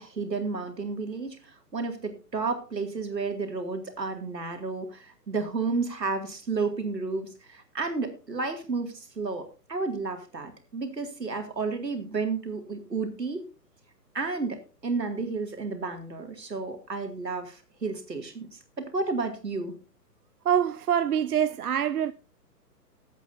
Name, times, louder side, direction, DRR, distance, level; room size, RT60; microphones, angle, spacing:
voice 1, 0.0-13.4 14.1-19.7, right 4 dB, 85° right, 2.5 m, -32 dB
voice 2, 20.4-22.1, right 9 dB, 65° right, 0.6 m, -25 dB
19.5 x 8.2 x 2.7 m
figure-of-eight pair, 125°, 49 cm